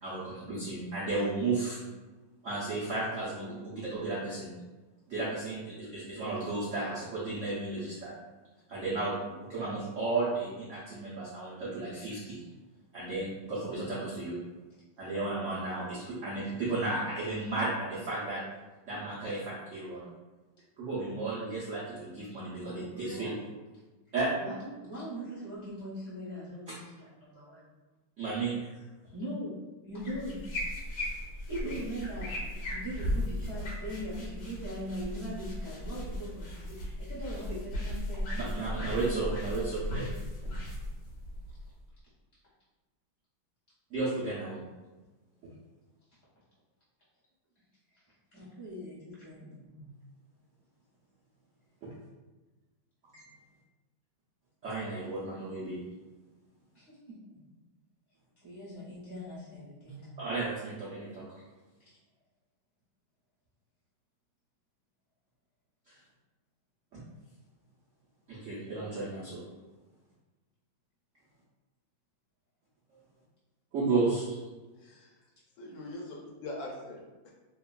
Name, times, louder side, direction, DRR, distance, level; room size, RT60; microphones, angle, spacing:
voice 1, 0.0-1.8 2.4-4.5 5.1-8.1 8.7-9.1 9.5-12.4 12.9-14.4 15.0-18.4 18.9-20.1 20.8-23.5 24.1-24.3 28.2-28.7 38.3-40.0 40.4-40.5 43.9-44.6 49.7-49.9 51.8-51.9 53.1-53.3 54.6-55.8 59.8-61.2 65.9-66.0 66.9-67.0 68.3-69.4 73.7-74.4, right 3 dB, 90° right, -8 dB, 0.6 m, -33 dB
voice 2, 24.4-27.6 28.5-28.6 29.1-29.5 29.9-30.4 31.5-32.3 32.7-38.5 39.9-40.1 48.3-49.6 56.7-56.9 58.4-60.0, equal, 30° right, -9 dB, 0.4 m, -40 dB
sound 1, 30.0-41.9, left 1 dB, 55° left, 1.3 m, -36 dB
voice 3, 74.8-75.1 75.6-77.3, left 1 dB, 75° left, -1 dB, 1.3 m, -42 dB
3.4 x 2.2 x 2.2 m, 1.2 s
omnidirectional pair, 2.2 m